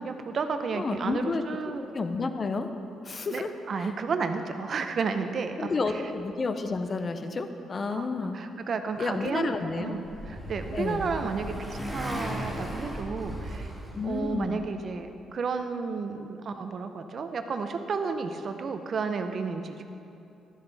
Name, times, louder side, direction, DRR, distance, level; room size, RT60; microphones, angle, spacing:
voice 1, 0.0-1.8 3.3-6.0 7.9-8.0 8.3-9.5 9.8-13.7 14.0-19.8, right 5 dB, 50° right, 7 dB, 0.7 m, -32 dB
voice 2, 0.7-1.4 1.9-2.7 3.0-3.5 3.8-3.9 5.6-8.4 9.0-10.0 10.7-11.1 13.9-14.6, left 3 dB, 35° left, 8 dB, 0.7 m, -30 dB
Motorcycle, 9.6-14.6, equal, 5° left, 2.6 m, -37 dB
12.0 x 11.0 x 3.4 m, 2.7 s
cardioid pair, 90°, 0 cm